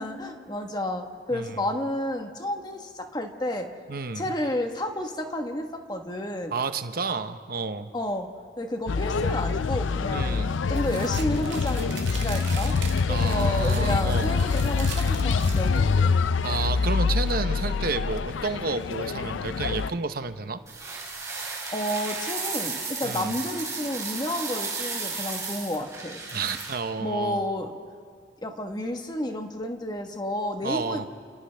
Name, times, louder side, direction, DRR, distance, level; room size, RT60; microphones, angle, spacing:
voice 1, 0.0-3.7 4.1-6.6 7.9-8.3 8.6-12.8 13.1-16.1 21.7-26.2 27.0-27.7 28.4-31.1, left 1 dB, 20° left, 4 dB, 1.3 m, -31 dB
voice 2, 3.9-4.3 6.5-7.9 10.1-10.5 13.1-14.4 16.4-20.6 23.0-23.3 26.3-27.4 30.6-31.1, right 4 dB, 50° right, 9 dB, 0.9 m, -30 dB
sound 1, 8.9-19.9, left 5 dB, 85° left, 0.5 m, -25 dB
sound 2, 10.7-16.2, right 6 dB, 80° right, 1.9 m, -40 dB
sound 3, 20.7-26.8, right 4 dB, 15° right, 3.7 m, -34 dB
29.5 x 29.0 x 3.4 m, 2.1 s
head